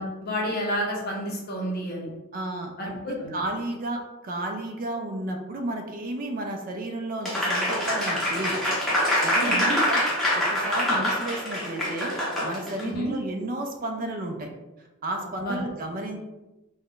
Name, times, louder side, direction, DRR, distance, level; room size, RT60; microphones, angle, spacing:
voice 1, 0.0-2.1 2.8-3.3 9.4-9.8 12.8-13.1 15.4-15.6, equal, 50° left, -2 dB, 0.7 m, -30 dB
voice 2, 2.3-8.6 8.9-10.0 10.3-14.5 15.0-16.2, right 1 dB, 40° right, 3 dB, 0.3 m, -32 dB
Applause, 7.2-12.8, left 1 dB, ahead, 0.7 m, -25 dB
2.4 x 2.1 x 3.6 m, 1.1 s
head